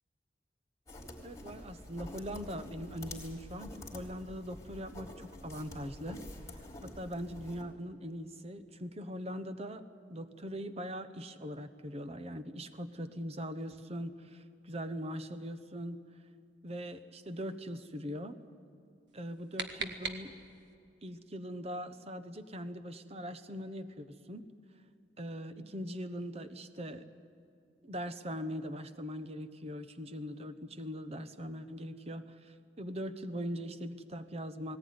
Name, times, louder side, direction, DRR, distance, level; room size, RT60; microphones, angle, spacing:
sound 1, 0.9-7.6, left 1 dB, 20° left, 3.8 m, -48 dB
voice 1, 1.2-6.2 6.8-16.0 16.6-18.4 19.1-20.4 21.0-24.5 25.2-27.0 27.8-34.8, equal, 35° right, 10 dB, 1.1 m, -41 dB
sound 2, 19.1-20.7, right 5 dB, 70° right, 1.7 m, -41 dB
19.0 x 18.5 x 9.6 m, 2.4 s
head